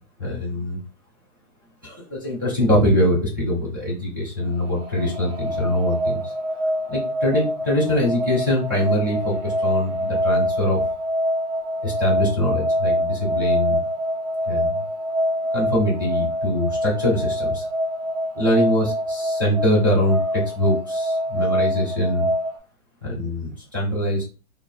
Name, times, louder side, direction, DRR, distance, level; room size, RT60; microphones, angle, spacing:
voice 1, 0.2-0.8 1.8-6.3 6.9-10.8 11.8-13.8 14.5-14.7 15.5-17.6 18.3-22.3 23.0-24.2, left 1 dB, 15° right, -5 dB, 0.3 m, -23 dB
sound 1, 4.4-22.6, equal, 85° right, 1.0 m, -25 dB
3.1 x 2.1 x 2.2 m, 0.33 s
hypercardioid pair, 150°, 43 cm